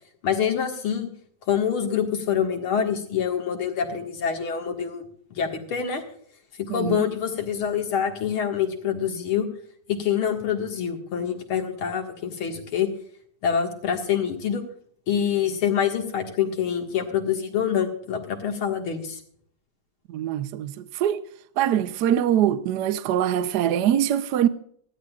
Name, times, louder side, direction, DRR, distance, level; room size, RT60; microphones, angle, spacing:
voice 1, 0.2-1.1 1.5-5.0 5.3-6.0 6.7-9.5 9.9-12.9 13.4-14.6 15.1-19.2, left 8 dB, 80° left, 2.6 m, -26 dB
voice 2, 6.7-7.1 20.1-21.2 21.6-24.5, right 10 dB, 65° right, 1.1 m, -23 dB
19.0 x 13.5 x 2.4 m
omnidirectional pair, 2.3 m